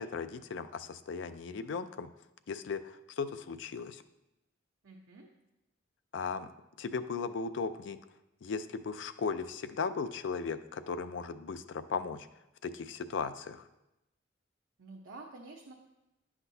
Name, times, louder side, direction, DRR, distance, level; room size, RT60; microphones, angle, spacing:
voice 1, 0.0-2.1 2.5-4.0 6.1-6.5 6.8-8.0 8.4-12.3 12.6-13.6, left 5 dB, 70° left, 11 dB, 0.4 m, -37 dB
voice 2, 4.8-5.3 14.8-15.7, right 3 dB, 85° right, -1 dB, 0.7 m, -49 dB
9.9 x 5.8 x 2.7 m, 0.92 s
head